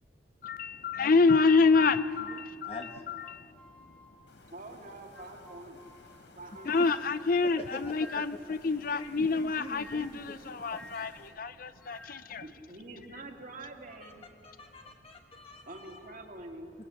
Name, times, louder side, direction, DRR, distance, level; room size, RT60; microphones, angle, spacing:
voice 1, 0.4-2.8 3.1-3.5 6.7-12.5, left 4 dB, 50° left, 13 dB, 0.6 m, -27 dB
sound 1, 1.1-4.4 4.9-8.6 9.4-12.4, left 1 dB, 10° left, 2.0 m, -53 dB
voice 2, 2.3-3.0 6.6-6.7 7.6-8.4 8.9-10.4 10.7-11.0 13.9-14.1 14.4-16.2, left 2 dB, 30° left, 3 dB, 1.1 m, -45 dB
sound 2, 4.3-11.3, left 2 dB, 70° left, 4.7 m, -58 dB
voice 3, 4.5-5.8 6.3-7.0 12.4-14.3 15.7-16.7, right 2 dB, 45° right, 2 dB, 2.2 m, -46 dB
27.5 x 20.5 x 8.3 m, 2.4 s
head